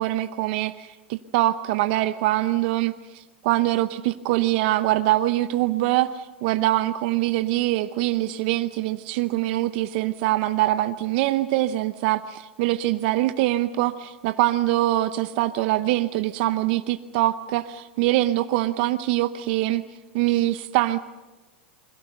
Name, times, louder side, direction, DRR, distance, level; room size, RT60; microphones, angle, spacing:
voice 1, 0.0-19.8 20.1-21.0, right 16 dB, 60° right, 11 dB, 0.8 m, -23 dB
28.0 x 22.0 x 6.7 m, 1.2 s
hypercardioid pair, 100°, 6 cm